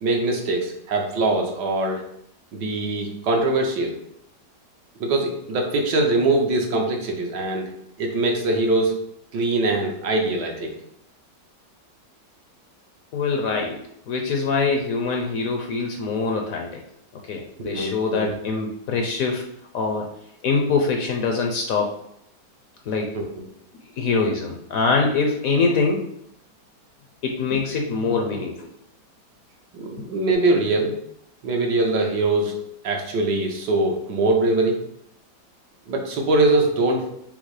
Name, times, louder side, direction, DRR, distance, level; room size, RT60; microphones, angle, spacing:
voice 1, 0.0-2.0 2.5-4.0 5.0-7.7 8.0-9.0 9.3-10.7 17.6-18.3 23.1-23.2 29.7-30.9 31.4-32.6 32.8-34.8 35.9-37.0, right 2 dB, 75° right, 2 dB, 1.5 m, -22 dB
voice 2, 13.1-13.8 14.1-16.8 17.3-19.4 19.7-20.0 20.4-21.9 22.9-23.1 24.0-26.0 27.2-28.5, left 4 dB, 65° left, 2 dB, 0.9 m, -23 dB
5.4 x 2.0 x 4.7 m, 0.74 s
omnidirectional pair, 1.9 m